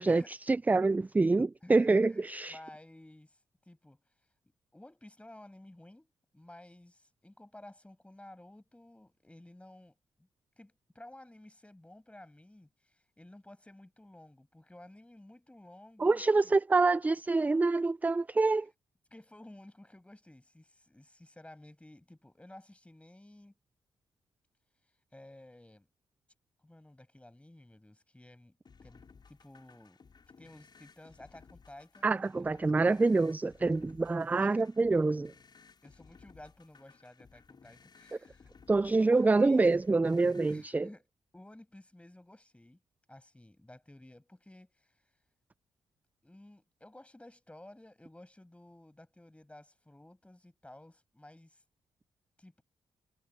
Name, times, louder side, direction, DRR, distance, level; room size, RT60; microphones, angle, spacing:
voice 1, 0.0-2.6 16.0-18.7 32.0-35.3 38.7-40.9, right 3 dB, 15° right, 0.3 m, -26 dB
voice 2, 1.6-3.4 3.6-4.0 4.7-10.3 10.6-16.6 18.5-18.7 19.1-23.5 25.1-25.9 26.6-30.0 30.4-32.1 32.3-32.6 32.9-33.2 34.4-34.6 35.8-38.5 38.8-39.7 40.5-41.1 41.3-42.8 43.1-45.0 46.2-51.6 52.4-52.6, left 1 dB, 10° left, 7.8 m, -54 dB
sound 1, 28.6-40.6, left 5 dB, 45° left, 5.5 m, -59 dB
supercardioid pair, 60°, 10 cm